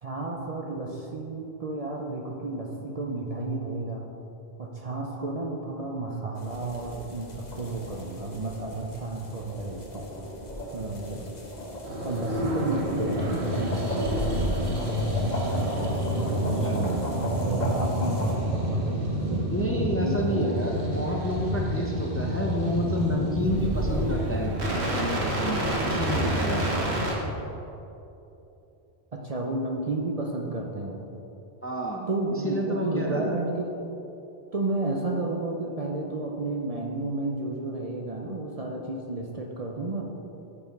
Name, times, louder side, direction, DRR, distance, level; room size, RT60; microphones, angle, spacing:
voice 1, 0.0-4.1 4.6-10.5 10.7-11.4 12.0-13.8 15.7-17.1 17.3-19.5 20.0-20.6 29.1-31.0 32.1-33.8 34.5-40.0, right 2 dB, 40° right, 0 dB, 0.6 m, -32 dB
sound 1, 6.4-18.3, equal, 45° left, 1.2 m, -36 dB
sound 2, 11.8-27.1, equal, 90° right, 1.6 m, -28 dB
voice 2, 19.5-26.8 31.6-32.1 32.4-33.4, equal, 15° left, 0 dB, 0.6 m, -30 dB
7.1 x 6.7 x 5.2 m, 2.9 s
omnidirectional pair, 1.1 m